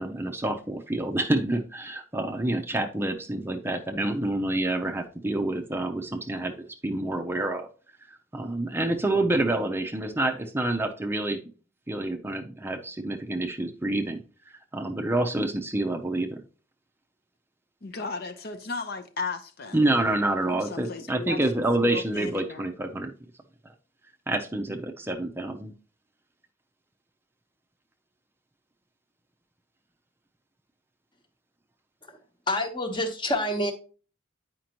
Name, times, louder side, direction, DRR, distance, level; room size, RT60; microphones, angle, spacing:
voice 1, 0.0-7.7 8.1-11.4 11.9-16.4 19.7-23.1 24.3-25.7, right 2 dB, 10° right, 0.5 m, -28 dB
voice 2, 17.8-19.8 20.5-22.7, left 4 dB, 55° left, 0.7 m, -36 dB
voice 3, 32.5-33.7, left 1 dB, 25° left, 1.1 m, -27 dB
9.0 x 5.1 x 2.9 m
head